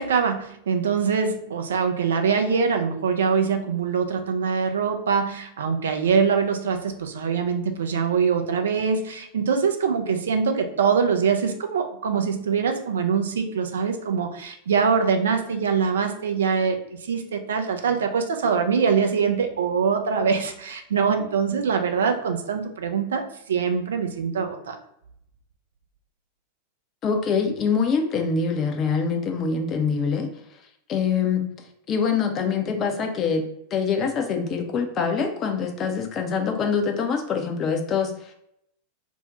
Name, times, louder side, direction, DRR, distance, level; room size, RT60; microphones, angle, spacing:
voice 1, 0.0-24.8, right 6 dB, 65° right, 6 dB, 0.4 m, -23 dB
voice 2, 27.0-30.3 30.9-31.5 31.9-33.4 33.7-38.3, left 5 dB, 30° left, 5 dB, 0.4 m, -24 dB
2.6 x 2.1 x 4.0 m, 0.75 s
figure-of-eight pair, 90°, 0 cm